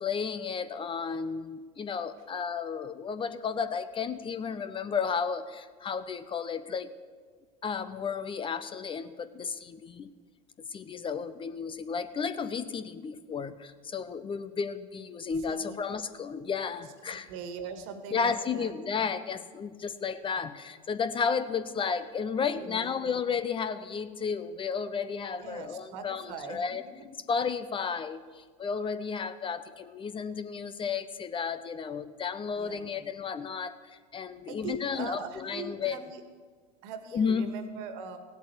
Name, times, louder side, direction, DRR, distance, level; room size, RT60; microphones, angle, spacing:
voice 1, 0.0-6.9 7.6-10.1 10.7-17.3 18.1-26.8 27.3-36.0 37.1-37.6, left 6 dB, 25° left, 12 dB, 0.7 m, -33 dB
voice 2, 15.5-15.8 17.0-19.1 22.5-23.1 25.4-26.6 32.5-33.0 34.5-36.2 36.8-38.2, right 5 dB, 60° right, 8 dB, 1.8 m, -41 dB
16.0 x 8.3 x 8.3 m, 1.5 s
hypercardioid pair, 90°, 21 cm